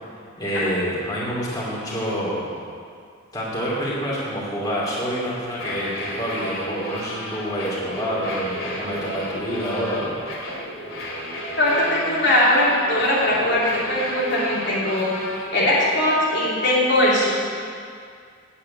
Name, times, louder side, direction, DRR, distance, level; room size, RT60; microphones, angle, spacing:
voice 1, 0.4-2.5 3.3-10.2, equal, 20° left, -7 dB, 2.7 m, -27 dB
sound 1, 5.5-15.5, left 1 dB, 80° left, 2.6 m, -33 dB
voice 2, 11.6-17.3, left 1 dB, 55° left, -7 dB, 2.8 m, -20 dB
8.7 x 8.5 x 8.6 m, 2.2 s
head